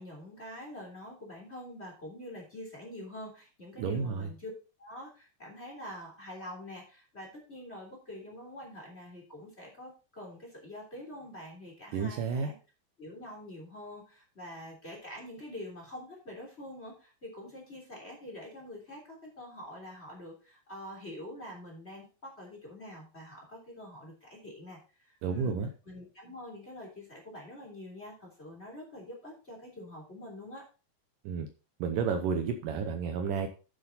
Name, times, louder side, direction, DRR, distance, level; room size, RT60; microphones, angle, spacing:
voice 1, 0.0-4.5 4.8-12.5 13.0-25.5 25.8-30.6, left 1 dB, 20° left, -1 dB, 3.2 m, -45 dB
voice 2, 3.8-4.3 11.9-12.5 25.2-25.7 31.3-31.5 31.8-33.5, right 6 dB, 70° right, 6 dB, 2.3 m, -31 dB
9.2 x 7.7 x 4.0 m, 0.34 s
omnidirectional pair, 4.3 m